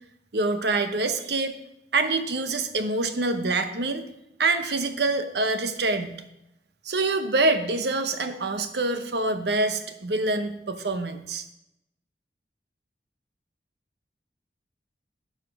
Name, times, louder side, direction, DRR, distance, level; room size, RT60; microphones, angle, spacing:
voice 1, 0.3-1.6 1.9-4.0 4.4-6.2 6.8-11.4, right 2 dB, 75° right, 9 dB, 0.9 m, -25 dB
12.0 x 4.4 x 5.9 m, 0.85 s
head